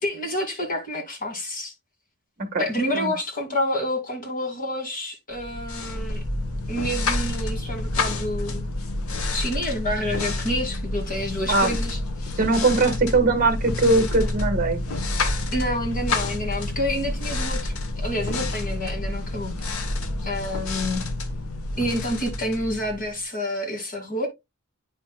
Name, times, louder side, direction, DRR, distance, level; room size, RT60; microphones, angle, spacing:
voice 1, 0.0-1.7 2.6-6.2 6.7-8.6 9.3-12.0 12.3-12.4 15.5-19.5 20.2-21.0 21.8-24.3, left 1 dB, 40° left, 2.2 m, -28 dB
sound 1, 5.4-23.2, left 2 dB, 75° left, 1.0 m, -28 dB
voice 2, 12.4-14.8, right 3 dB, 40° right, 1.5 m, -21 dB
9.3 x 5.9 x 2.2 m
head